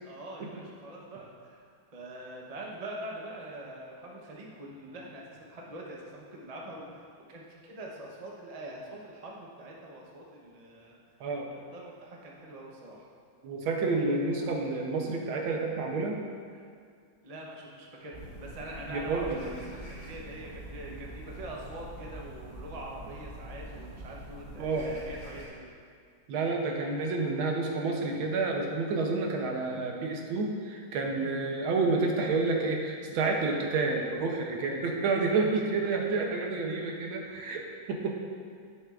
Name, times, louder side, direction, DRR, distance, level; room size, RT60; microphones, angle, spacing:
voice 1, 0.0-1.7 1.9-7.0 7.3-11.0 11.7-13.1 17.2-25.7 35.2-35.3 35.5-35.7 37.2-37.5, right 1 dB, 60° right, -2 dB, 0.4 m, -44 dB
voice 2, 13.4-16.2 18.9-19.5 20.9-21.0 24.6-24.9 26.3-38.1, right 3 dB, 75° right, 1 dB, 1.6 m, -29 dB
sound 1, 18.1-25.5, right 1 dB, 30° left, 1.0 m, -45 dB
10.5 x 7.0 x 2.5 m, 2.1 s
omnidirectional pair, 2.3 m